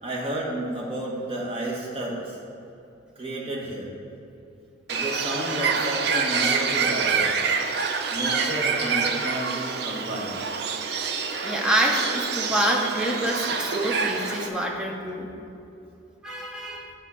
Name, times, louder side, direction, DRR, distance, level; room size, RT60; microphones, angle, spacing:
voice 1, 0.0-2.4 3.2-3.9 4.9-7.3 8.1-10.4, right 1 dB, 30° right, -3 dB, 1.2 m, -31 dB
Bird, 4.9-14.5, right 5 dB, 55° right, 0.5 m, -26 dB
voice 2, 11.4-15.3 16.2-16.9, right 1 dB, 5° right, -1 dB, 0.7 m, -26 dB
8.5 x 3.7 x 6.8 m, 2.8 s
head